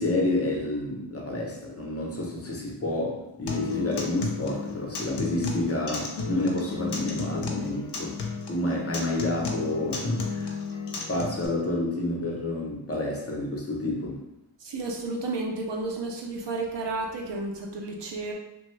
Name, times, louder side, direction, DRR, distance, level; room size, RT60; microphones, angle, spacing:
voice 1, 0.0-8.2 8.5-10.5 11.1-14.2, left 2 dB, 35° left, -2 dB, 0.7 m, -29 dB
Acoustic guitar, 3.5-11.5, left 4 dB, 70° left, 0.6 m, -33 dB
voice 2, 14.6-18.3, right 3 dB, 80° right, 0 dB, 0.6 m, -32 dB
3.1 x 2.2 x 3.1 m, 0.87 s
wide cardioid pair, 80°, 42 cm